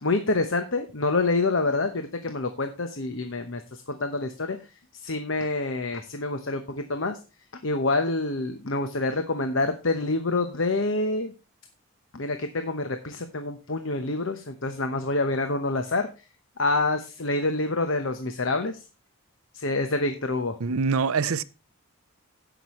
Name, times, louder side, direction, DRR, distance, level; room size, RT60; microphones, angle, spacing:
voice 1, 0.0-4.6 5.0-7.2 7.6-11.3 12.1-16.1 16.6-18.8 19.5-20.6, left 2 dB, 60° left, 1.0 m, -27 dB
voice 2, 20.6-21.4, right 5 dB, 75° right, 0.6 m, -24 dB
17.0 x 6.1 x 3.1 m
head